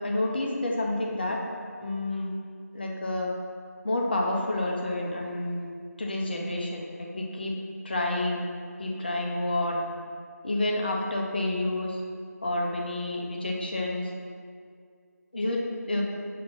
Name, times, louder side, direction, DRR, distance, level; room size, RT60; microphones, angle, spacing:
voice 1, 0.0-1.4 1.8-2.3 2.7-3.3 3.8-5.7 6.0-7.5 7.8-8.4 8.8-9.8 10.4-12.0 12.4-14.1 15.3-16.0, left 1 dB, 35° left, -1 dB, 0.7 m, -29 dB
6.9 x 2.9 x 5.4 m, 2.1 s
figure-of-eight pair, 170°, 9 cm